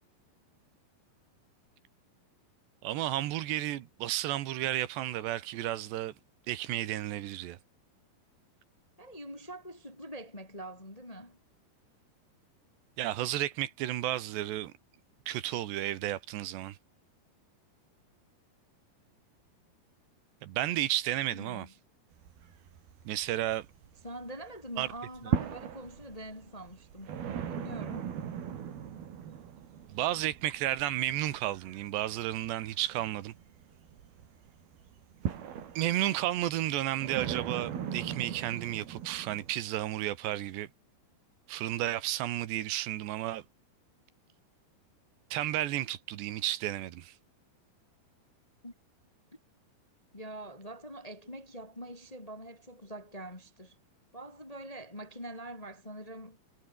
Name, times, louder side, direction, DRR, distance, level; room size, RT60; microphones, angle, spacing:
voice 1, 2.8-6.1 6.5-7.6 13.0-14.7 15.3-16.8 20.4-21.7 23.1-23.7 24.8-24.9 29.9-33.3 35.8-40.7 41.5-43.4 45.3-47.1, right 14 dB, 80° right, 3.5 m, -32 dB
voice 2, 9.0-11.4 21.2-21.7 24.0-27.2 27.5-28.1 48.6-48.7 49.3-49.4 50.1-53.8 54.1-56.5, right 1 dB, 10° left, 1.8 m, -44 dB
sound 1, 22.1-24.3 24.6-39.5, right 8 dB, 65° right, 4.5 m, -39 dB
omnidirectional pair, 4.9 m